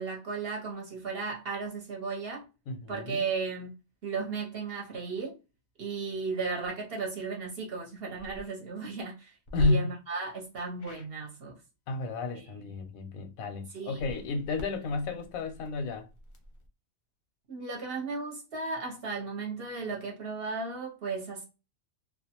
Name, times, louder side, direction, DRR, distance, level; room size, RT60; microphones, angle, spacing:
voice 1, 0.0-2.5 2.9-3.7 4.0-5.4 5.8-11.5 12.3-12.7 13.7-14.0 17.5-21.4, right 4 dB, 55° right, 0.8 m, -35 dB
voice 2, 2.7-3.2 9.5-9.9 11.9-16.1, left 3 dB, 85° left, 1.0 m, -31 dB
sound 1, 8.1-8.4 9.5-9.7 10.8-11.1 13.9-16.7, left 1 dB, 50° left, 0.6 m, -41 dB
2.5 x 2.2 x 2.8 m
omnidirectional pair, 1.4 m